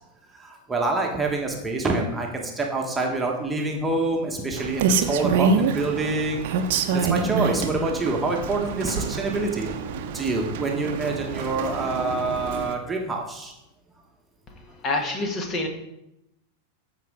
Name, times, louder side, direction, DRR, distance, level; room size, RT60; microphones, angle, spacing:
voice 1, 0.3-6.5 6.9-9.7 10.1-13.5, right 3 dB, 10° right, 0 dB, 1.4 m, -26 dB
Rain, 4.6-12.7, right 5 dB, 50° right, 0.8 m, -27 dB
voice 2, 14.8-15.7, left 2 dB, 30° left, 4 dB, 1.7 m, -26 dB
14.0 x 5.0 x 3.7 m, 0.87 s
figure-of-eight pair, 90°, 0 cm